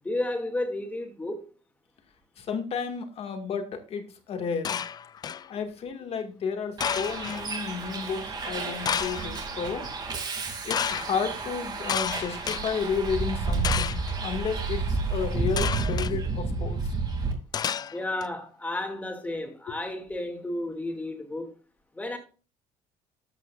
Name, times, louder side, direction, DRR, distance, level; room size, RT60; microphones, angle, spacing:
voice 1, 0.0-1.5 17.9-21.5 21.9-22.2, left 1 dB, 10° left, 2.4 m, -32 dB
voice 2, 2.4-4.8 5.5-9.9 10.6-16.8 19.7-19.8, left 6 dB, 50° left, 2.1 m, -32 dB
sound 1, 4.6-5.5 6.8-7.4 8.8-9.4 10.7-11.1 11.9-12.6 13.6-14.1 15.6-16.1 17.5-18.3, left 8 dB, 30° left, 0.4 m, -30 dB
Bus, 6.8-17.3, right 4 dB, 30° right, 2.7 m, -31 dB
13.5 x 8.3 x 2.5 m
cardioid pair, 125°, 13 cm